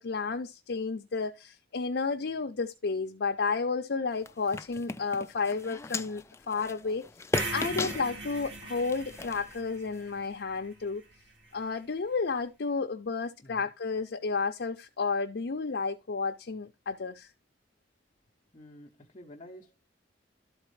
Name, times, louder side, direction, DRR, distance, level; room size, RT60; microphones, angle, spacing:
voice 1, 0.0-7.0 7.5-11.0 11.5-17.3, left 4 dB, 65° left, 0.6 m, -32 dB
sound 1, 4.1-10.2, left 3 dB, 15° left, 0.3 m, -38 dB
sound 2, 7.3-11.5, right 2 dB, 70° right, 1.6 m, -40 dB
voice 2, 13.4-13.7 18.5-19.9, left 1 dB, 30° left, 0.8 m, -50 dB
12.5 x 4.2 x 3.2 m
head